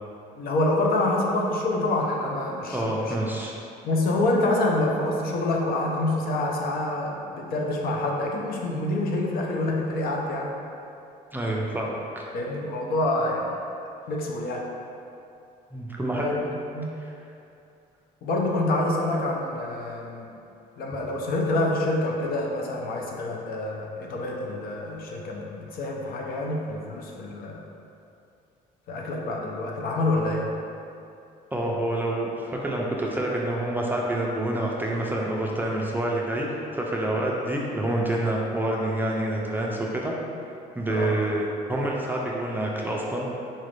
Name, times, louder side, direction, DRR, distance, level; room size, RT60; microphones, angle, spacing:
voice 1, 0.4-3.2 3.8-10.5 12.3-13.6 14.1-14.7 16.1-16.9 18.2-20.3 20.8-27.6 28.9-30.5 40.9-41.2, left 2 dB, 60° left, 0 dB, 0.6 m, -27 dB
voice 2, 2.7-3.5 11.3-12.3 15.7-16.3 17.0-17.1 31.5-40.1 40.8-43.3, right 1 dB, 10° right, -3 dB, 0.4 m, -27 dB
4.1 x 2.4 x 3.2 m, 2.6 s
cardioid pair, 110°, 17 cm